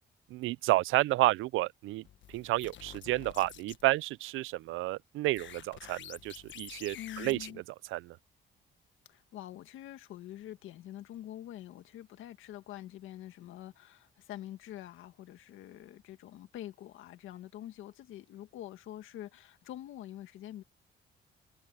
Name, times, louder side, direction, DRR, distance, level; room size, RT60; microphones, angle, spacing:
voice 1, 0.3-7.4 7.9-8.2, right 18 dB, 85° right, 0.4 m, -31 dB
sound 1, 2.0-3.8 5.3-7.5, left 11 dB, 70° left, 1.4 m, -49 dB
voice 2, 6.9-7.6 9.1-20.6, left 12 dB, 85° left, 1.8 m, -46 dB
cardioid pair, 90°, 20 cm